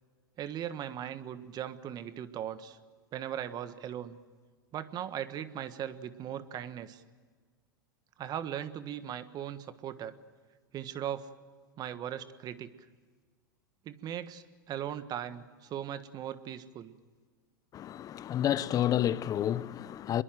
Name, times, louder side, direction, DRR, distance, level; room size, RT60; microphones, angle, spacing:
voice 1, 0.4-2.8 3.1-4.2 4.7-7.0 8.2-10.1 10.7-11.3 11.8-12.7 13.8-16.9, right 10 dB, 35° right, 1.5 m, -38 dB
voice 2, 17.7-20.2, left 11 dB, 30° left, 0.8 m, -30 dB
25.0 x 22.0 x 7.7 m
hypercardioid pair, 100°, 11 cm